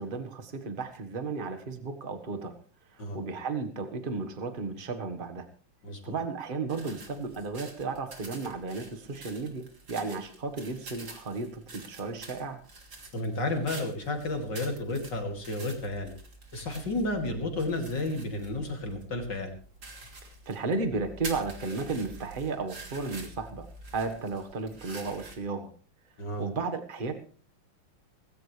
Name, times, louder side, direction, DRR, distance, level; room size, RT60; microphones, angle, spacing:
voice 1, 0.0-2.5 2.9-5.5 6.0-12.6 20.4-23.7 23.9-25.7 26.4-27.1, right 4 dB, 25° right, 7 dB, 1.5 m, -34 dB
voice 2, 5.8-6.2 13.1-16.1 16.5-19.5 26.2-26.5, left 2 dB, 55° left, 4 dB, 3.3 m, -32 dB
sound 1, 6.7-25.4, right 3 dB, 50° right, 3.4 m, -47 dB
19.0 x 17.0 x 3.3 m, 0.41 s
omnidirectional pair, 2.3 m